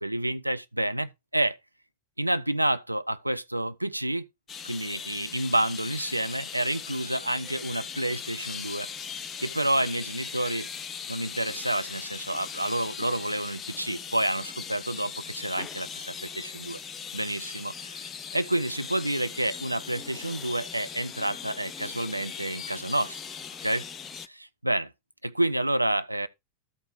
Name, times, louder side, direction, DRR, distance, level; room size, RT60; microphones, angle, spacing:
voice 1, 0.0-1.6 2.2-4.2 4.6-8.9 9.4-10.7 11.1-16.8 17.1-23.2 23.6-23.9 24.2-24.9 25.2-26.3, right 1 dB, 85° right, 0.5 m, -29 dB
sound 1, 4.5-24.3, left 7 dB, 20° left, 0.5 m, -39 dB
13.0 x 4.9 x 2.9 m
figure-of-eight pair, 90°, 0 cm